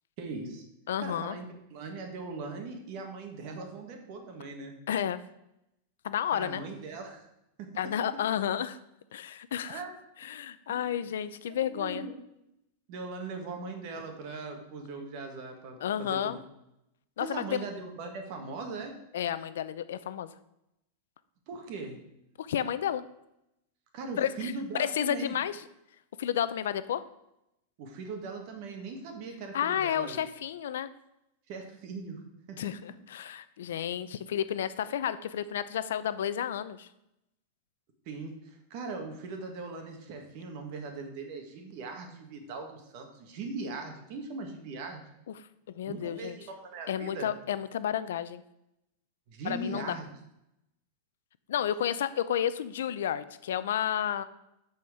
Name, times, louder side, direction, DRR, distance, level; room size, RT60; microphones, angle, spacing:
voice 1, 0.2-0.6 1.0-1.4 1.7-4.8 6.3-7.2 7.6-7.8 9.7-9.9 10.7-10.8 11.1-11.2 11.6-12.1 12.9-16.4 17.2-19.0 21.5-22.0 23.9-25.3 27.8-30.2 31.5-32.7 38.0-45.0 45.9-47.3 49.3-50.1, right 3 dB, 35° right, 4 dB, 1.5 m, -40 dB
voice 2, 0.9-1.4 4.9-5.2 6.0-6.6 7.8-8.8 9.1-9.8 10.2-12.0 15.8-16.4 17.2-17.7 19.1-20.3 22.4-23.0 24.2-24.5 24.8-25.6 26.2-27.0 29.5-30.9 32.6-36.9 45.7-46.4 46.9-48.4 49.4-50.0 51.5-54.2, left 9 dB, 85° left, 14 dB, 0.5 m, -31 dB
12.0 x 4.4 x 4.9 m, 0.84 s
supercardioid pair, 175°, 0 cm